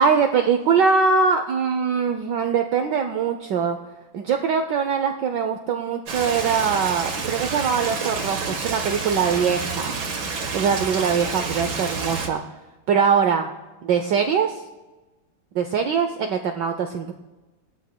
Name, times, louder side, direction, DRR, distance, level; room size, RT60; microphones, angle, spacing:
voice 1, 0.0-3.8 4.1-10.0 10.5-12.4 12.9-13.5 13.8-14.6 15.5-17.1, right 6 dB, 70° right, 6 dB, 1.1 m, -22 dB
Stream, 6.1-12.3, right 4 dB, 55° right, 1.9 m, -29 dB
20.0 x 12.5 x 2.2 m, 1.1 s
omnidirectional pair, 2.4 m